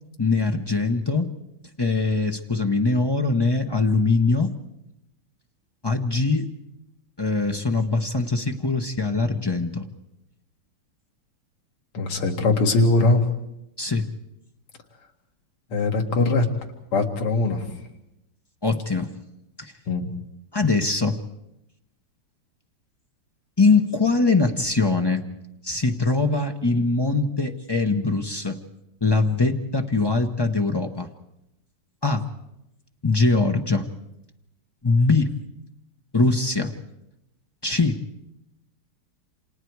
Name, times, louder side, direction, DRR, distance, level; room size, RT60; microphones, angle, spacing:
voice 1, 0.2-1.3 1.8-4.5 5.8-6.5 7.2-9.8 13.8-14.0 18.6-19.1 19.6-19.7 20.5-21.2 23.6-25.2 25.6-28.6 29.0-31.1 32.0-32.2 33.0-33.9 34.8-35.3 36.1-36.7 37.6-38.0, left 3 dB, 35° left, 4 dB, 0.4 m, -22 dB
voice 2, 11.9-13.2 15.7-16.5 16.9-17.7 19.9-20.1, left 3 dB, 90° left, 3 dB, 3.0 m, -21 dB
29.0 x 26.5 x 4.7 m, 0.86 s
omnidirectional pair, 2.4 m